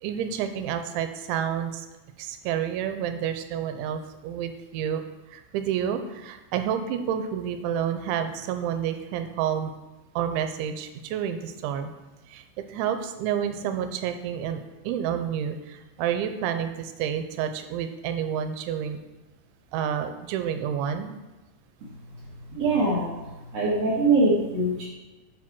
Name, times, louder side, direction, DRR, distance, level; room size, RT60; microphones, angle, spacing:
voice 1, 0.0-1.9 2.2-9.7 10.2-11.9 12.3-12.4 12.7-19.0 19.7-21.2 23.2-23.4, right 9 dB, 85° right, 8 dB, 3.1 m, -29 dB
voice 2, 22.5-23.1 23.5-24.8, right 2 dB, 50° right, -7 dB, 1.9 m, -22 dB
7.5 x 7.5 x 6.1 m, 1.1 s
omnidirectional pair, 5.3 m